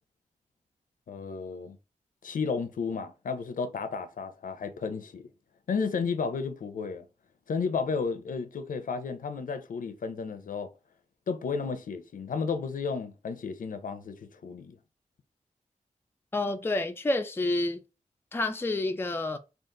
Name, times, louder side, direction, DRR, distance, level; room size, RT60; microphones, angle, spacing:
voice 1, 1.1-1.8 2.2-5.3 5.7-7.0 7.5-10.7 11.3-14.8, left 5 dB, 85° left, 0.6 m, -33 dB
voice 2, 16.3-17.8 18.3-19.4, left 2 dB, 15° left, 0.4 m, -29 dB
3.9 x 2.5 x 3.6 m
wide cardioid pair, 140°, 14 cm